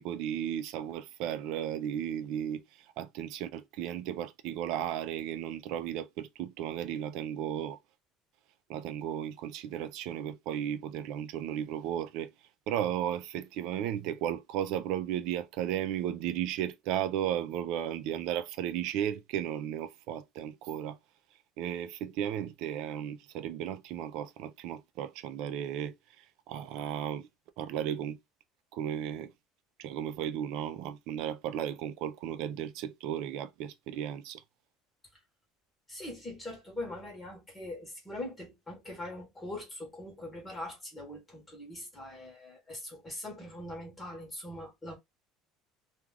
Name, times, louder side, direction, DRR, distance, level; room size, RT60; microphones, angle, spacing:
voice 1, 0.0-7.8 8.7-12.3 12.7-21.0 21.6-25.9 26.5-27.3 27.6-28.2 28.7-29.3 29.8-34.4, right 10 dB, 60° right, 0.4 m, -35 dB
voice 2, 35.9-44.9, left 1 dB, 15° left, 1.0 m, -42 dB
2.3 x 2.3 x 3.2 m
cardioid pair, 170°, 0 cm